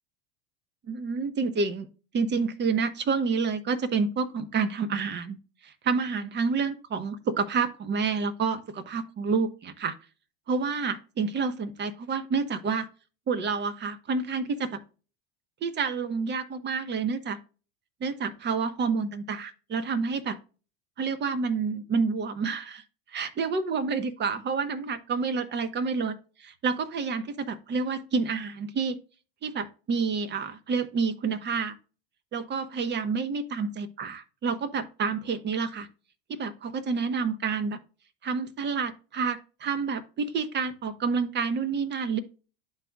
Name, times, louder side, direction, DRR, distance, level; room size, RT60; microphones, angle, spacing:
voice 1, 0.9-1.9 2.1-5.4 5.6-9.9 10.5-12.9 13.3-14.8 15.6-17.4 18.0-20.4 21.0-22.8 23.1-29.0 29.4-31.7 32.3-35.9 36.3-37.8 38.2-42.2, right 5 dB, 35° right, 11 dB, 1.1 m, -29 dB
11.5 x 4.0 x 2.3 m, 0.35 s
supercardioid pair, 100°, 31 cm